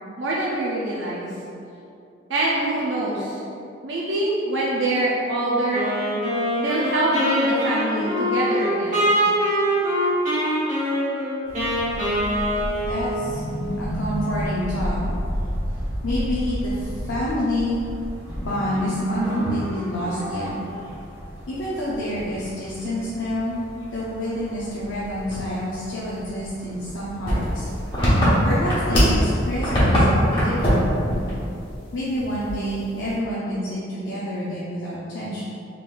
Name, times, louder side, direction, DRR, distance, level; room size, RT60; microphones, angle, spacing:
voice 1, 0.2-1.3 2.3-3.4 3.8-5.9 6.6-9.1, right 1 dB, 70° right, -5 dB, 0.5 m, -24 dB
Wind instrument woodwind instrument, 5.7-13.4, equal, 40° right, 1.3 m, -23 dB
sound 1, 11.4-28.2, equal, 20° right, 1.2 m, -32 dB
voice 2, 12.9-13.4 13.8-15.0 15.7-17.8 18.5-20.5 21.5-27.7 28.4-30.9 31.9-35.4, left 1 dB, 85° left, -8 dB, 0.6 m, -28 dB
sound 2, 27.3-29.2 29.5-30.0 30.3-30.8 31.1-31.3 31.7-31.8 32.4-32.9, equal, 25° left, 1.1 m, -19 dB
3.8 x 3.7 x 2.5 m, 2.6 s
head